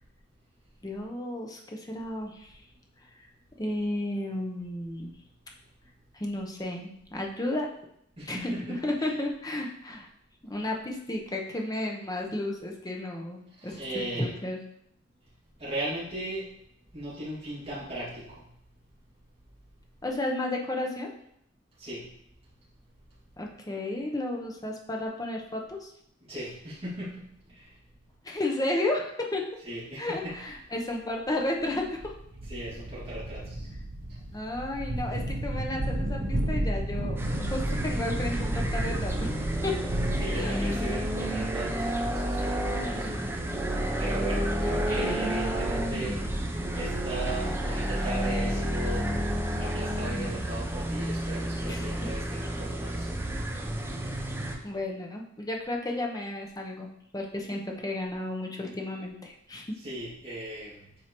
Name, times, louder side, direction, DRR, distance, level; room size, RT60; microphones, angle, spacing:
voice 1, 0.8-2.5 3.6-5.1 6.1-7.7 8.3-10.1 10.4-14.6 20.0-21.1 23.4-25.9 28.2-29.4 30.0-32.1 34.3-39.3 39.6-39.7 40.3-40.9 44.6-45.3 51.6-52.1 54.6-59.8, left 1 dB, 20° left, 1 dB, 0.8 m, -33 dB
voice 2, 8.2-9.1 13.6-14.4 15.6-16.5 16.9-18.5 21.8-22.1 26.2-27.8 29.6-30.3 32.5-33.7 40.2-49.3 49.6-53.2 59.8-60.9, right 1 dB, 30° right, -9 dB, 2.3 m, -38 dB
sound 1, 30.5-30.6 31.3-31.4 31.7-42.7, right 1 dB, 60° right, 0.7 m, -33 dB
sound 2, 37.2-54.6, right 1 dB, 10° right, 0.6 m, -30 dB
7.6 x 4.5 x 3.0 m, 0.73 s
head